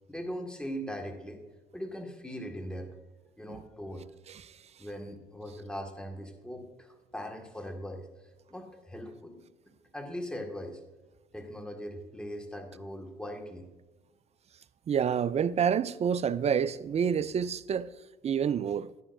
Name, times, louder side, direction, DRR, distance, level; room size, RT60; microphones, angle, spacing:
voice 1, 0.1-1.4 1.7-3.0 3.4-4.1 4.8-8.1 8.5-9.4 9.9-10.8 11.3-13.7, equal, 5° left, 1.9 m, -40 dB
voice 2, 14.9-17.9 18.2-18.9, right 7 dB, 35° right, 0.5 m, -28 dB
11.0 x 10.0 x 2.7 m
hypercardioid pair, 65°, 18 cm